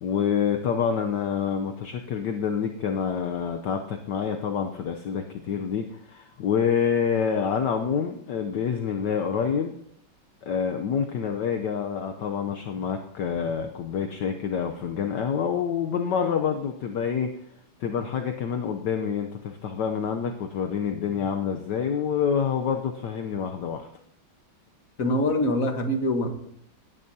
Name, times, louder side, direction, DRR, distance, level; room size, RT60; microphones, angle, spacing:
voice 1, 0.0-9.8 10.4-17.3 17.8-23.9, left 7 dB, 65° left, 5 dB, 1.2 m, -27 dB
voice 2, 25.0-26.3, left 1 dB, 45° left, 5 dB, 1.6 m, -24 dB
18.0 x 11.0 x 2.8 m, 0.72 s
omnidirectional pair, 2.3 m